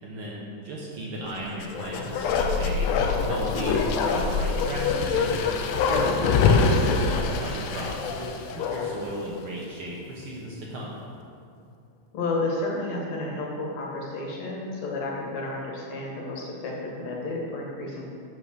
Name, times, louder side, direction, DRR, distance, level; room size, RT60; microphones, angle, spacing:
voice 1, 0.0-5.4 5.9-10.9, right 1 dB, 65° right, -4 dB, 1.4 m, -35 dB
Bark, 1.5-9.1 9.4-9.5, left 4 dB, 85° left, 1.5 m, -24 dB
voice 2, 12.1-18.1, left 2 dB, 60° left, -2 dB, 2.5 m, -31 dB
7.7 x 6.1 x 6.8 m, 2.3 s
omnidirectional pair, 3.8 m